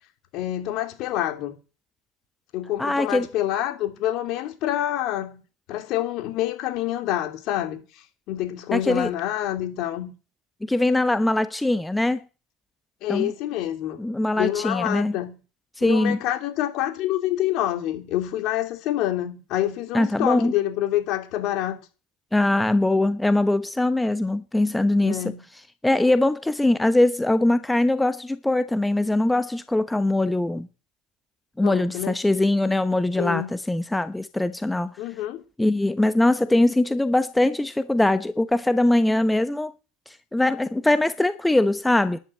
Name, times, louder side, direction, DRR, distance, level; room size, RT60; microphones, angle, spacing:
voice 1, 0.3-1.6 2.5-5.4 5.7-10.1 13.0-14.0 14.3-15.4 15.8-21.8 25.0-25.4 31.6-32.2 33.2-33.5 35.0-35.4, left 13 dB, 60° left, 3.0 m, -27 dB
voice 2, 2.8-3.3 8.7-9.1 10.7-12.2 13.1-13.3 14.0-15.2 15.8-16.2 19.9-20.5 22.3-25.3 25.8-30.7 31.6-35.0 35.6-39.7 40.1-42.2, left 1 dB, 10° left, 1.1 m, -22 dB
11.5 x 10.5 x 7.9 m
hypercardioid pair, 85°, 0 cm